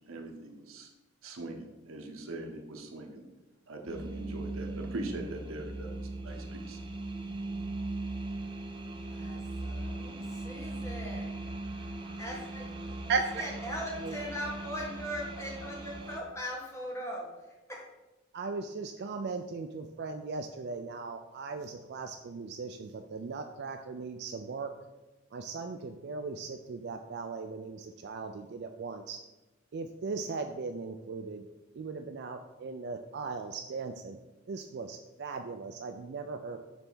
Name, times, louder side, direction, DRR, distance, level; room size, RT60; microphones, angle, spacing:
voice 1, 0.1-0.9 1.2-3.2 3.7-6.8, right 2 dB, 90° right, 3 dB, 1.1 m, -41 dB
sound 1, 3.9-16.2, right 2 dB, 25° right, 0.8 m, -39 dB
voice 2, 9.1-11.3 12.2-12.7 13.3-17.9, equal, 15° left, -3 dB, 1.6 m, -40 dB
voice 3, 13.1-13.5 13.9-14.2 18.3-24.7 25.3-29.2 29.7-31.5 31.7-34.2 34.5-36.6, right 4 dB, 55° right, 6 dB, 0.4 m, -38 dB
6.8 x 3.4 x 6.1 m, 1.1 s
head